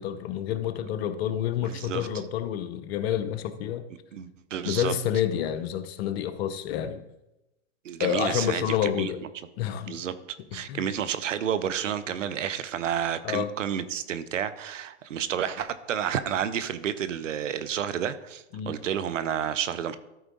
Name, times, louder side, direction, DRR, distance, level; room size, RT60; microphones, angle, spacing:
voice 1, 0.0-3.8 4.6-7.0 8.0-9.2 9.6-10.0 10.5-10.8 13.2-13.5 18.5-18.7, left 10 dB, 55° left, 10 dB, 0.9 m, -29 dB
voice 2, 1.7-2.1 4.1-4.9 7.8-9.1 9.9-10.1 10.5-20.0, right 9 dB, 85° right, 13 dB, 0.8 m, -30 dB
13.0 x 4.5 x 3.9 m, 0.94 s
hypercardioid pair, 110°, 37 cm